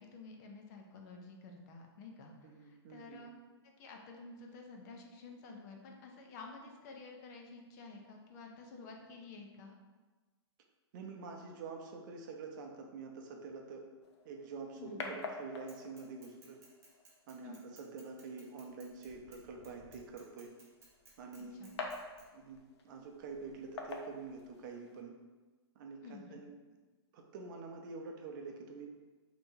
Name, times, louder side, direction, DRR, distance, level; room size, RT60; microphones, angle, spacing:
voice 1, 0.0-3.3 3.6-9.8 14.8-15.1 17.4-17.6 21.5-21.7 26.0-26.4, left 3 dB, 40° left, 2 dB, 0.6 m, -51 dB
voice 2, 2.4-3.2 10.9-13.9 14.2-16.6 17.3-20.5 21.2-21.6 22.3-25.2 25.8-26.5 27.1-28.9, right 4 dB, 45° right, 2 dB, 0.6 m, -47 dB
sound 1, 14.0-25.0, left 3 dB, 75° left, 0.7 m, -49 dB
Bicycle / Mechanisms, 15.7-22.2, right 3 dB, 20° right, 0.9 m, -60 dB
5.3 x 2.9 x 2.7 m, 1.3 s
hypercardioid pair, 150°, 14 cm